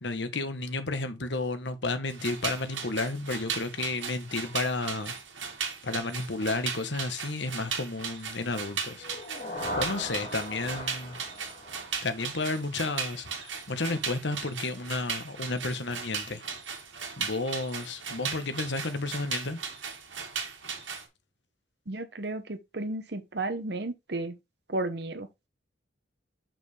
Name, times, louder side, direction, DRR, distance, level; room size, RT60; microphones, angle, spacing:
voice 1, 0.0-5.1 5.8-9.1 9.8-11.2 12.0-16.4 17.2-19.6, left 3 dB, 70° left, 1.2 m, -32 dB
sound 1, 2.1-21.1, right 6 dB, 85° right, 1.9 m, -37 dB
sound 2, 9.0-12.9, left 1 dB, 35° left, 3.0 m, -39 dB
voice 2, 21.9-24.4 24.7-25.3, right 2 dB, 60° right, 1.0 m, -33 dB
7.0 x 5.9 x 3.3 m
head